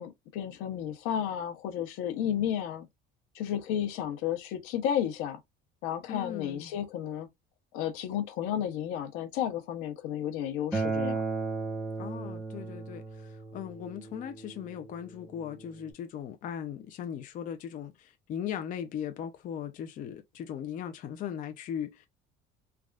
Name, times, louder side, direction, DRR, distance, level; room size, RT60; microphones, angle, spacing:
voice 1, 0.0-2.9 3.3-5.4 5.8-7.3 7.7-11.2, left 10 dB, 80° left, 0.8 m, -32 dB
voice 2, 6.1-6.7 12.0-22.1, left 9 dB, 40° left, 0.5 m, -38 dB
Acoustic guitar, 10.7-15.9, right 4 dB, 5° right, 0.8 m, -35 dB
3.3 x 2.4 x 2.3 m
cardioid pair, 135°, 21 cm